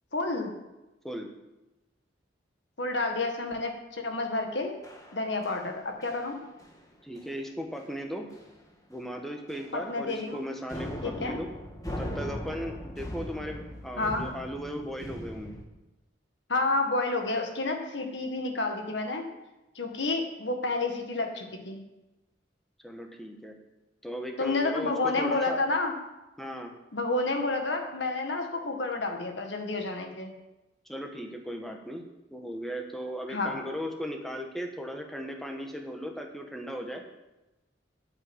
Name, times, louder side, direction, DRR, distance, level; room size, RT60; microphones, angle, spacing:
voice 1, 0.1-0.5 2.8-4.7 5.1-6.3 9.7-10.4 11.0-11.4 14.0-14.3 16.5-19.2 19.7-21.8 24.4-25.9 26.9-30.3 33.3-33.5, left 2 dB, 70° left, 4 dB, 1.8 m, -30 dB
sound 1, 4.8-5.7 6.0-6.3 6.6-6.8 7.2-7.4 7.7-7.8 8.3-8.6 8.9-9.1 9.5-10.4 10.7-15.6, equal, 20° left, 1.5 m, -40 dB
voice 2, 7.0-8.3 8.9-11.5 12.0-15.5 22.8-23.5 24.0-25.6 26.4-26.7 30.8-32.0 32.3-37.0, equal, ahead, 2 dB, 1.3 m, -37 dB
8.9 x 8.8 x 8.1 m, 1.0 s
head